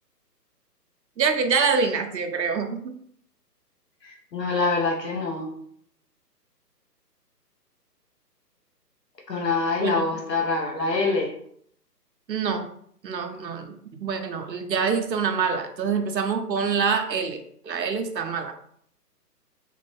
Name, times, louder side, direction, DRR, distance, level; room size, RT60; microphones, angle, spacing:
voice 1, 1.2-2.9 9.8-10.1 12.3-12.7 13.0-13.7 14.0-17.4 17.6-18.5, right 5 dB, 90° right, 6 dB, 0.7 m, -25 dB
voice 2, 4.0-5.5 9.3-11.4, left 3 dB, 75° left, 0 dB, 0.9 m, -25 dB
3.7 x 2.2 x 3.1 m, 0.66 s
figure-of-eight pair, 140°, 49 cm